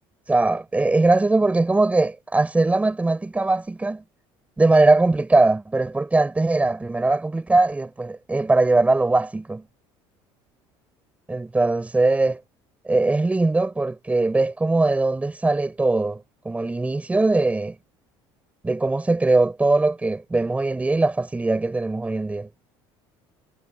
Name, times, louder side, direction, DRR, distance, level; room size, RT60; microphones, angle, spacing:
voice 1, 0.3-4.0 4.6-9.6 11.3-12.4 12.8-17.8 18.6-22.5, right 2 dB, 15° right, 6.6 m, -21 dB
supercardioid pair, 105°, 11 cm